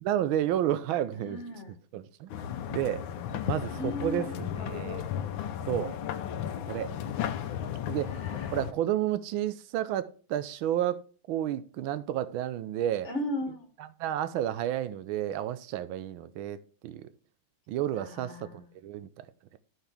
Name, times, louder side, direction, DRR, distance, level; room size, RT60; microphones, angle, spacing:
voice 1, 0.0-1.4 1.9-2.3 2.7-3.1 3.5-5.1 5.7-5.9 6.7-6.9 7.9-8.1 8.5-11.0 11.3-13.1 14.0-17.1 17.7-19.3, right 11 dB, 90° right, 1.5 m, -31 dB
voice 2, 1.1-1.8 3.3-4.5 6.7-6.8 8.0-8.6 13.0-13.7 17.9-18.6, left 2 dB, 40° left, 1.4 m, -37 dB
sound 1, 2.3-8.7, left 9 dB, 80° left, 1.4 m, -34 dB
13.0 x 4.5 x 3.4 m
omnidirectional pair, 2.2 m